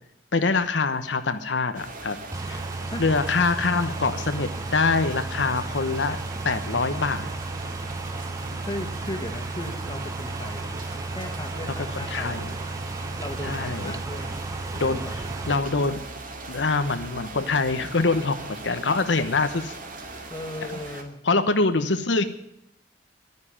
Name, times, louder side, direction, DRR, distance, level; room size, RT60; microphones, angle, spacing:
voice 1, 0.3-2.2 2.5-2.6 3.0-6.2 6.4-7.3 12.1-12.5 13.4-13.9 14.8-15.0 15.5-16.0 16.5-19.8 21.2-22.2, left 3 dB, 85° left, 9 dB, 1.0 m, -24 dB
sound 1, 1.7-21.0, right 3 dB, 50° right, 2.2 m, -40 dB
sound 2, 2.3-15.6, right 3 dB, 20° right, 0.5 m, -34 dB
voice 2, 8.6-10.7 11.1-12.4 13.2-14.4 14.8-15.1 20.3-21.2, left 1 dB, 25° left, 5 dB, 1.7 m, -36 dB
11.0 x 9.7 x 9.9 m, 0.78 s
head